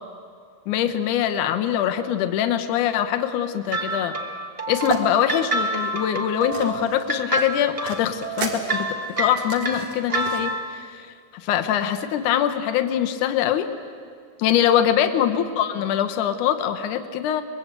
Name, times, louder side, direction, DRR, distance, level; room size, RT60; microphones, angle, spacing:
voice 1, 0.7-4.2 4.7-13.7 14.4-17.4, left 10 dB, 80° left, 7 dB, 2.4 m, -23 dB
sound 1, 3.7-10.8, right 2 dB, 45° right, 0.4 m, -28 dB
sound 2, 4.8-5.0 5.5-7.0 7.4-10.4, right 6 dB, 70° right, 3.5 m, -33 dB
23.0 x 22.0 x 8.1 m, 2.2 s
omnidirectional pair, 3.5 m